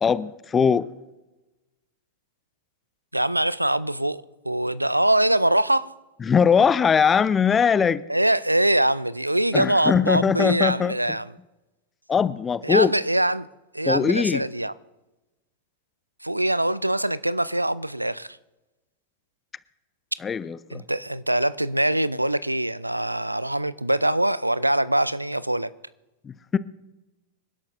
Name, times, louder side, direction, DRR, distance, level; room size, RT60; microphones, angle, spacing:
voice 1, 0.0-0.9 6.2-8.0 9.5-11.0 12.1-12.9 13.9-14.4 20.2-20.8 26.2-26.6, left 6 dB, 20° left, 0.6 m, -21 dB
voice 2, 3.1-5.9 8.1-11.3 12.6-13.5 13.7-14.7 16.2-18.4 20.7-25.7, right 1 dB, 85° right, 0.4 m, -23 dB
26.5 x 11.5 x 2.6 m
figure-of-eight pair, 90°, 0 cm